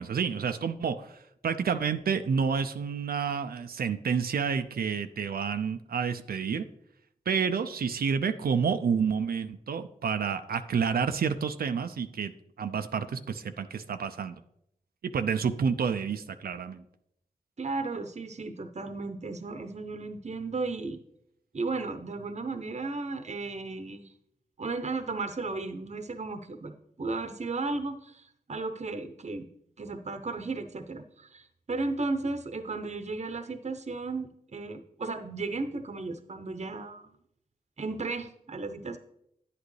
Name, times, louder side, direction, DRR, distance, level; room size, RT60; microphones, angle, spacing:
voice 1, 0.0-6.6 7.3-12.3 12.6-14.4 15.0-16.8, right 6 dB, 80° right, 8 dB, 0.5 m, -29 dB
voice 2, 17.6-21.0 21.5-24.1 24.6-29.5 29.8-37.2 37.8-39.0, right 3 dB, 45° right, 8 dB, 0.8 m, -35 dB
9.8 x 8.3 x 3.2 m, 0.75 s
cardioid pair, 45°, 15 cm